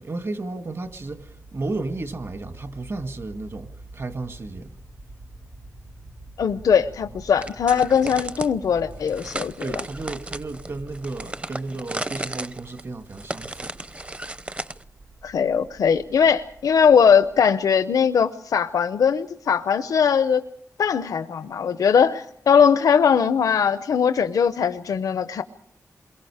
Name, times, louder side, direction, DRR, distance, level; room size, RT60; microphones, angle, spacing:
voice 1, 0.0-4.8 8.0-8.1 9.6-13.8, right 2 dB, 45° right, 2.0 m, -33 dB
sound 1, 0.8-17.4, right 2 dB, 85° right, 3.9 m, -46 dB
voice 2, 6.4-9.5 15.2-20.4 20.8-25.4, left 7 dB, 90° left, 0.8 m, -20 dB
sound 2, 7.4-8.5 9.1-14.8, right 2 dB, 20° right, 0.8 m, -34 dB
28.5 x 22.0 x 4.9 m
cardioid pair, 80°, 6 cm